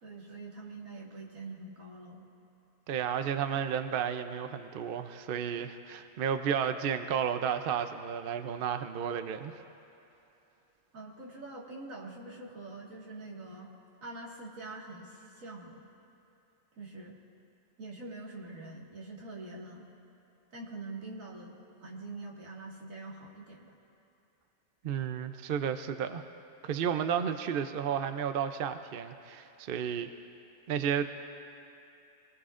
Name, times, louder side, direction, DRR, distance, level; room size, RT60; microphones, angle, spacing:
voice 1, 0.0-2.3 10.9-13.7 14.0-15.9 16.8-17.1 17.8-19.9 20.5-23.7, right 2 dB, 80° right, -3 dB, 2.3 m, -44 dB
voice 2, 2.9-9.5 24.8-26.2 26.6-30.1 30.7-31.1, right 8 dB, 55° right, 9 dB, 0.7 m, -32 dB
24.0 x 19.5 x 2.5 m, 2.8 s
omnidirectional pair, 1.4 m